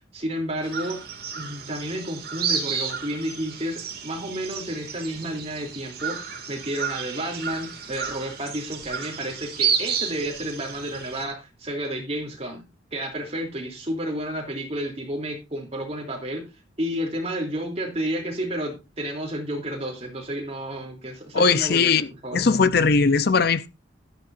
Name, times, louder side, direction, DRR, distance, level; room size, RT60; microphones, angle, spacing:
voice 1, 0.1-1.1 1.3-6.2 6.5-16.5 16.8-22.4, right 1 dB, 30° right, 3.0 m, -31 dB
sound 1, 0.6-11.2, right 7 dB, 50° right, 2.3 m, -31 dB
voice 2, 21.3-22.1 22.3-23.7, left 4 dB, 50° left, 0.5 m, -19 dB
13.0 x 10.5 x 2.6 m
head